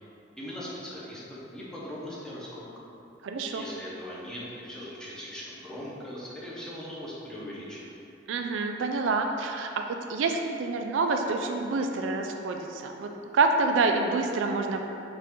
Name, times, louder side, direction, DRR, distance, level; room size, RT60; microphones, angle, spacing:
voice 1, 0.4-2.6 3.5-7.9, equal, 5° left, -7 dB, 0.8 m, -40 dB
voice 2, 3.2-3.6 8.3-9.8 10.1-14.8, right 3 dB, 75° right, 4 dB, 0.3 m, -27 dB
5.6 x 2.5 x 3.6 m, 2.8 s
head